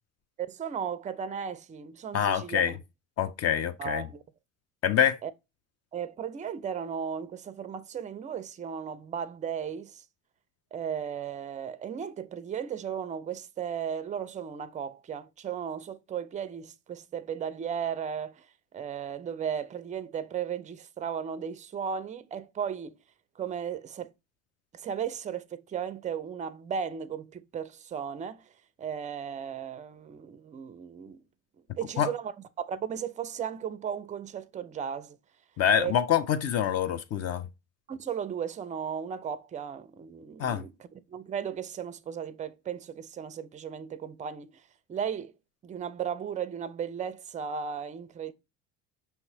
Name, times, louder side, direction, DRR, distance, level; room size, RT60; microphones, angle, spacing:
voice 1, 0.5-2.8 3.8-4.2 5.2-5.3 5.9-10.0 10.7-18.5 18.7-23.0 23.4-24.1 24.7-28.5 28.8-31.3 31.7-32.3 32.6-35.2 35.8-36.0 37.9-44.6 44.9-45.3 45.6-48.3, right 8 dB, 20° right, 0.4 m, -35 dB
voice 2, 2.1-2.7 3.2-4.0 4.8-5.2 32.0-32.1 35.6-37.5 40.4-40.6, left 9 dB, 40° left, 0.5 m, -25 dB
5.6 x 2.9 x 2.7 m
hypercardioid pair, 75°, 41 cm